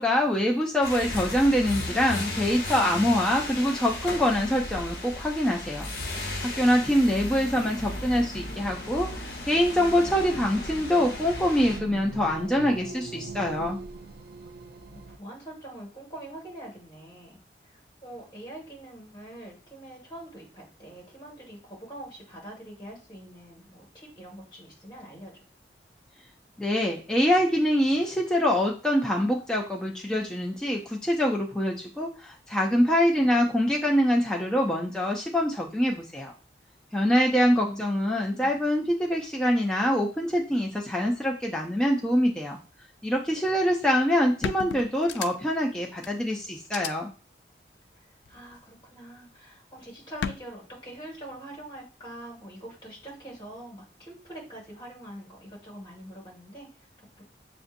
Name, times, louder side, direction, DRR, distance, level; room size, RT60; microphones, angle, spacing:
voice 1, 0.0-5.9 6.1-13.8 26.6-36.3 36.9-42.6 43.0-47.1, equal, 5° left, -1 dB, 0.4 m, -24 dB
sound 1, 0.8-11.8, left 2 dB, 55° left, 0.9 m, -35 dB
sound 2, 6.5-15.2, right 3 dB, 60° right, 0.4 m, -43 dB
voice 2, 10.3-11.2 14.9-25.4 37.6-38.6 47.9-57.2, right 1 dB, 25° left, -3 dB, 1.8 m, -44 dB
sound 3, 43.8-43.9 44.4-45.6 46.0-46.1 46.6-46.9 48.3-48.7 50.2-50.4, left 7 dB, 85° left, 0.3 m, -33 dB
6.9 x 2.6 x 2.6 m, 0.36 s
head